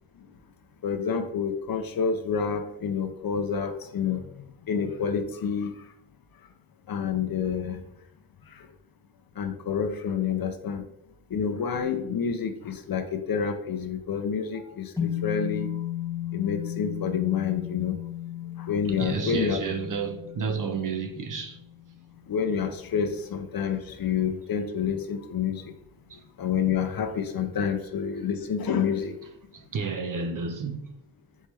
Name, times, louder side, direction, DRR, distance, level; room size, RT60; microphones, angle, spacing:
voice 1, 0.8-5.7 6.9-7.8 9.4-10.8 11.3-15.7 16.3-18.0 18.6-19.6 22.3-25.7 26.4-29.2, left 7 dB, 50° left, 0.5 m, -28 dB
sound 1, 15.0-23.4, left 11 dB, 5° left, 0.8 m, -35 dB
voice 2, 18.8-21.6 26.1-26.2 29.5-30.9, right 5 dB, 45° right, 0.5 m, -31 dB
4.5 x 3.1 x 3.3 m
wide cardioid pair, 125°, 45 cm